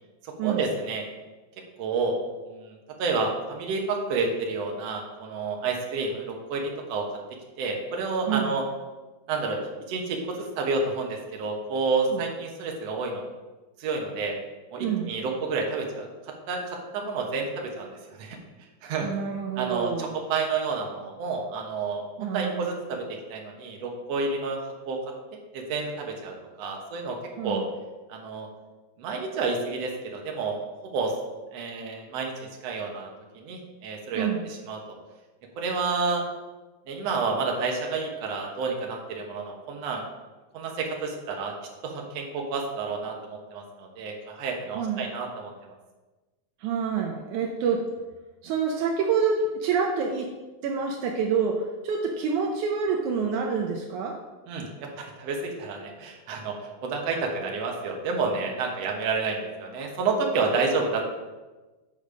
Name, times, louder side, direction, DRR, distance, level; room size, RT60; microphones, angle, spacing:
voice 1, 0.2-1.0 1.8-2.1 2.4-2.7 3.0-7.0 7.6-8.6 9.3-9.6 9.9-13.2 13.8-14.3 14.7-16.1 16.5-17.9 18.2-18.4 18.8-19.1 19.5-23.0 23.3-24.6 24.8-25.0 25.5-27.2 27.4-27.6 28.1-28.5 29.0-30.6 30.9-31.1 31.5-33.1 33.3-34.3 34.7-34.8 35.6-36.2 36.9-40.0 40.5-41.5 41.8-45.5 54.5-61.1, right 4 dB, 65° right, 1 dB, 1.7 m, -29 dB
voice 2, 14.8-15.1 19.0-20.1 22.2-22.8 27.4-27.6 34.1-34.4 44.7-45.0 46.6-47.8 48.4-50.3 50.6-54.1, right 6 dB, 85° right, 1 dB, 1.7 m, -27 dB
8.5 x 5.3 x 5.0 m, 1.2 s
omnidirectional pair, 4.4 m